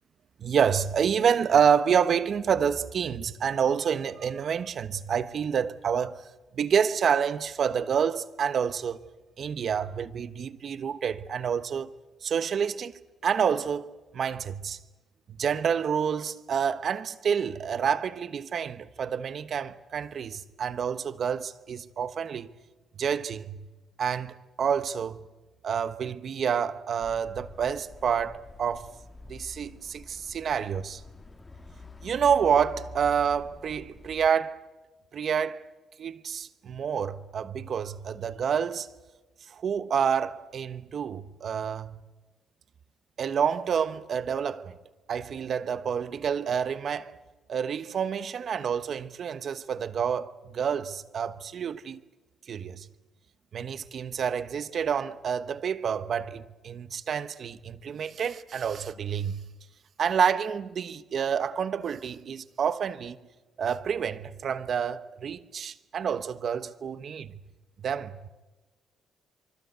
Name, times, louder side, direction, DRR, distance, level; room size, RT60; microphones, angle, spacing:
voice 1, 0.4-6.2 6.5-9.0 9.4-11.9 12.2-12.9 13.2-14.8 15.3-22.5 23.0-23.6 24.0-25.2 25.6-28.9 29.3-31.0 32.0-34.7 35.1-35.7 36.0-38.9 39.5-42.0 43.2-44.8 45.1-47.1 47.5-52.0 52.5-52.9 53.5-59.5 60.0-63.2 63.6-67.4 67.8-68.3, right 7 dB, 55° right, 1.1 m, -28 dB
sound 1, 27.0-34.3, left 3 dB, 25° left, 1.6 m, -47 dB
25.5 x 24.5 x 8.1 m
cardioid pair, 90°, 0 cm